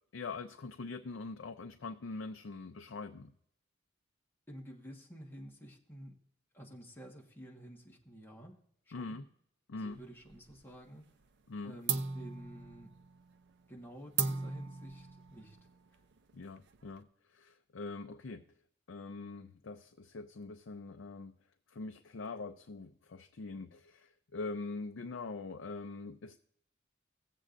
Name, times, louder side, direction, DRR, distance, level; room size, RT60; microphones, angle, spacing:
voice 1, 0.1-3.3 8.9-9.3 9.7-10.0 11.5-11.7 16.3-17.1 17.3-18.4 18.9-21.3 21.7-26.4, left 3 dB, 65° left, 5 dB, 0.5 m, -43 dB
voice 2, 4.5-6.2 6.5-8.6 8.9-9.2 9.7-11.0 11.6-12.9 13.7-15.6, equal, 10° left, -2 dB, 1.4 m, -51 dB
sound 1, 9.9-10.8 11.1-11.5 11.9-17.0, right 6 dB, 60° right, 0.5 m, -39 dB
17.0 x 7.6 x 2.6 m, 0.69 s
head